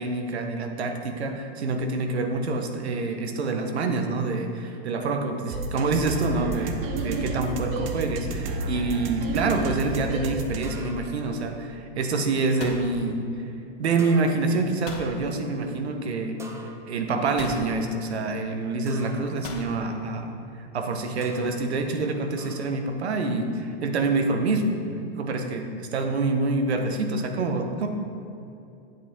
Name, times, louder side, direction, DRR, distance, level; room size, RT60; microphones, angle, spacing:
voice 1, 0.0-6.8 7.0-13.2 13.8-16.4 16.9-24.7 25.2-27.9, right 3 dB, 90° right, 5 dB, 1.2 m, -26 dB
sound 1, 5.5-10.6, right 2 dB, 65° right, 1.1 m, -30 dB
sound 2, 10.6-11.4 14.0-14.7 16.4-17.2 18.9-19.4 21.2-21.7 22.4-22.9, right 2 dB, 10° right, 0.4 m, -45 dB
sound 3, 12.6-13.8 14.9-15.2 16.3-16.4 17.4-17.7 19.4-19.8, left 4 dB, 60° left, 1.5 m, -39 dB
8.8 x 7.9 x 3.7 m, 2.7 s
hypercardioid pair, 130°, 32 cm